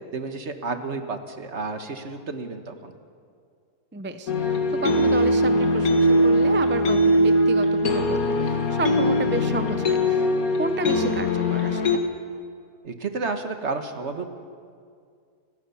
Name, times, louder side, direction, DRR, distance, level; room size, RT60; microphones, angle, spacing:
voice 1, 0.1-2.9 12.8-14.3, right 3 dB, 50° right, 7 dB, 1.7 m, -31 dB
voice 2, 3.9-10.3 10.5-12.0, right 3 dB, 15° right, 9 dB, 0.4 m, -32 dB
sound 1, 4.3-12.0, left 1 dB, 65° left, 2.2 m, -21 dB
29.0 x 16.5 x 7.0 m, 2.2 s
omnidirectional pair, 1.6 m